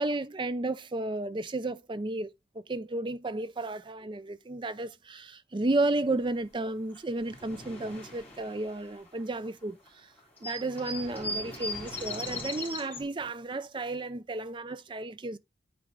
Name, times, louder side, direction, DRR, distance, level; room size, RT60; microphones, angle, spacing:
voice 1, 0.0-10.1 10.4-15.4, right 2 dB, 25° right, 0.5 m, -33 dB
sound 1, 6.7-6.8 7.0-9.5 9.9-10.0 10.2-13.0, left 2 dB, 10° left, 3.5 m, -38 dB
9.5 x 4.6 x 3.8 m
head